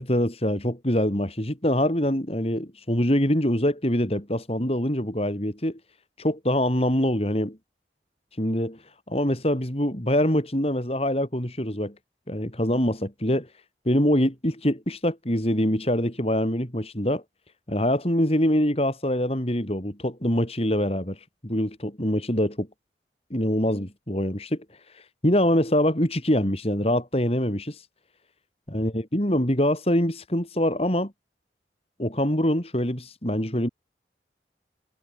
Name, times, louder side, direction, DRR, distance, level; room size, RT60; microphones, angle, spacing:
voice 1, 0.0-5.8 6.2-7.6 8.4-8.8 9.1-11.9 12.3-13.5 13.8-17.2 17.7-22.7 23.3-24.6 24.9-27.8 28.7-31.1 32.0-33.7, equal, 35° left, 4.4 m, -24 dB
head